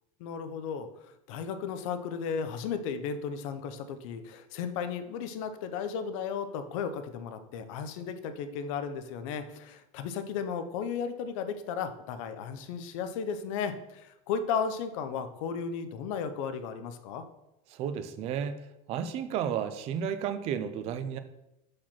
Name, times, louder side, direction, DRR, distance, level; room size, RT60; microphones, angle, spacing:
voice 1, 0.2-17.2, left 6 dB, 60° left, 9 dB, 0.7 m, -35 dB
voice 2, 17.7-21.2, right 8 dB, 35° right, 11 dB, 0.4 m, -33 dB
4.9 x 4.4 x 5.8 m, 0.88 s
supercardioid pair, 165°, 19 cm